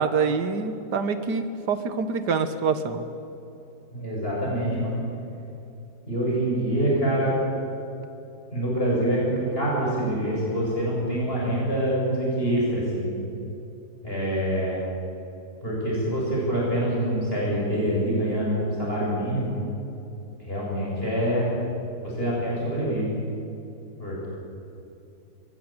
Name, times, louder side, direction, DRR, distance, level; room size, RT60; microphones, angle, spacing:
voice 1, 0.0-3.0, right 5 dB, 70° right, 10 dB, 2.0 m, -25 dB
voice 2, 3.9-5.0 6.1-7.4 8.5-13.1 14.0-14.8 15.6-19.6 20.4-21.5 22.0-23.2 24.0-24.3, right 1 dB, 30° left, -6 dB, 7.5 m, -25 dB
23.0 x 18.5 x 9.0 m, 2.9 s
omnidirectional pair, 1.8 m